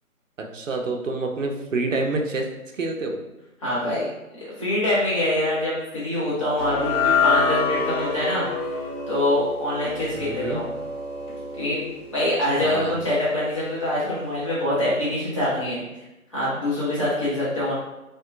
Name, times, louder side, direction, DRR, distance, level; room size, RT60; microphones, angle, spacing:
voice 1, 0.4-2.5 2.8-3.2 10.1-10.6 12.6-13.1, right 3 dB, 60° right, 2 dB, 0.6 m, -27 dB
voice 2, 3.6-4.0 4.4-8.5 9.1-10.6 11.6-11.8 12.1-15.8 16.3-17.7, left 1 dB, 20° left, -10 dB, 0.8 m, -24 dB
sound 1, 6.6-13.0, left 5 dB, 85° left, 1.0 m, -27 dB
3.4 x 2.2 x 2.4 m, 0.97 s
figure-of-eight pair, 155°, 43 cm